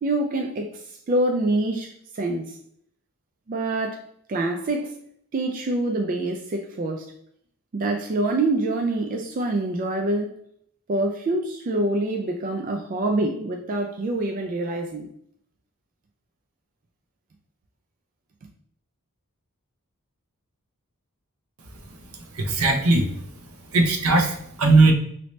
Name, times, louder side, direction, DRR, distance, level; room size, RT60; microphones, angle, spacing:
voice 1, 0.0-2.6 3.5-5.0 5.3-7.1 7.7-10.3 10.9-15.1, right 2 dB, 35° right, 2 dB, 0.3 m, -26 dB
voice 2, 22.3-23.0 23.7-24.9, right 3 dB, 70° right, 3 dB, 0.7 m, -18 dB
3.1 x 2.7 x 3.1 m, 0.69 s
head